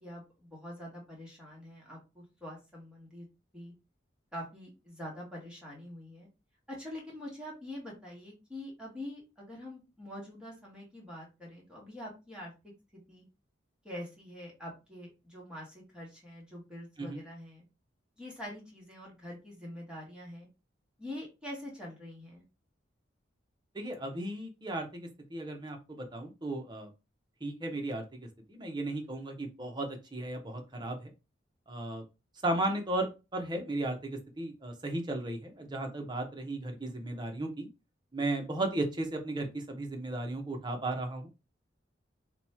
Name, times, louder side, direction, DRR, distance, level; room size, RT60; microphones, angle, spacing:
voice 1, 0.0-3.3 3.5-3.7 4.3-6.3 6.7-12.7 13.1-13.2 13.8-17.6 18.2-20.5 21.0-22.4, left 1 dB, 5° right, -4 dB, 1.3 m, -45 dB
voice 2, 23.7-26.9 27.4-31.1 31.7-32.0 32.4-37.7 38.1-41.3, right 2 dB, 25° right, 3 dB, 0.7 m, -35 dB
2.9 x 2.3 x 4.2 m, 0.27 s
head